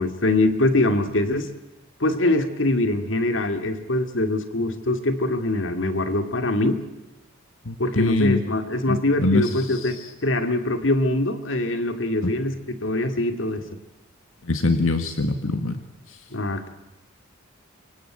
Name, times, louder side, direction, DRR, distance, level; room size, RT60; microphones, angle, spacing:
voice 1, 0.0-1.5 2.0-6.8 7.8-13.6 16.3-16.7, left 2 dB, 65° left, 8 dB, 2.5 m, -23 dB
voice 2, 7.7-8.4 8.9-10.1 12.2-12.3 14.4-15.8 16.1-16.2, left 2 dB, 85° left, 7 dB, 1.9 m, -24 dB
26.5 x 24.0 x 9.1 m, 1.0 s
head